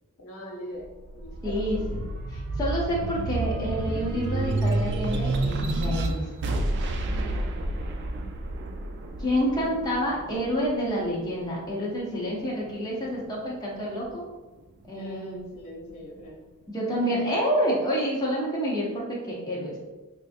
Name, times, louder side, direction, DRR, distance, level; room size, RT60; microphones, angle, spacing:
voice 1, 0.2-0.9 1.1-1.9 7.0-7.4 15.0-16.4 17.0-17.2, equal, 80° left, -2 dB, 1.0 m, -41 dB
sound 1, 0.8-11.6 12.1-13.3, right 2 dB, 55° right, 0.4 m, -30 dB
voice 2, 1.4-2.0 2.3-6.3 9.2-14.2 14.9-15.4 16.7-19.8, equal, 20° left, -5 dB, 0.6 m, -28 dB
4.3 x 2.4 x 2.5 m, 1.1 s
head